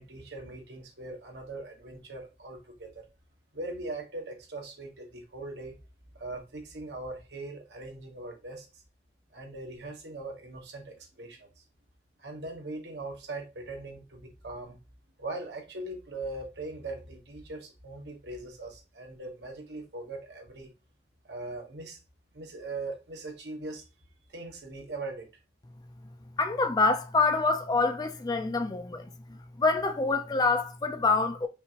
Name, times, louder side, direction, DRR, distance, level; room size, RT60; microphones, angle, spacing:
voice 1, 0.0-3.0 3.5-5.8 6.1-8.7 9.3-11.6 12.2-14.8 15.2-20.7 21.2-22.0 22.3-23.8 24.3-25.3, right 2 dB, 65° right, 1.1 m, -40 dB
voice 2, 26.4-29.1 29.6-31.5, left 3 dB, 20° left, 0.4 m, -26 dB
5.5 x 2.5 x 2.9 m
head